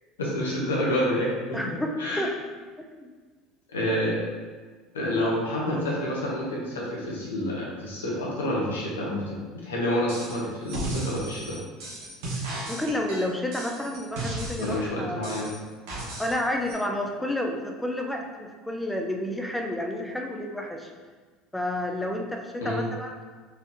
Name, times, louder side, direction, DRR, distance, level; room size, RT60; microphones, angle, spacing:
voice 1, 0.2-1.6 2.0-2.3 3.7-4.3 4.9-11.6 14.6-15.5 22.6-22.9, left 1 dB, 85° left, -4 dB, 1.0 m, -28 dB
voice 2, 1.5-2.3 3.0-3.1 12.3-15.3 16.2-20.9 21.5-23.2, left 1 dB, 10° left, 2 dB, 0.7 m, -30 dB
sound 1, 10.1-10.4 10.7-14.8 15.2-16.4 16.7-16.8, right 2 dB, 65° right, 1.2 m, -35 dB
4.4 x 3.5 x 2.7 m, 1.4 s
hypercardioid pair, 70°, 0 cm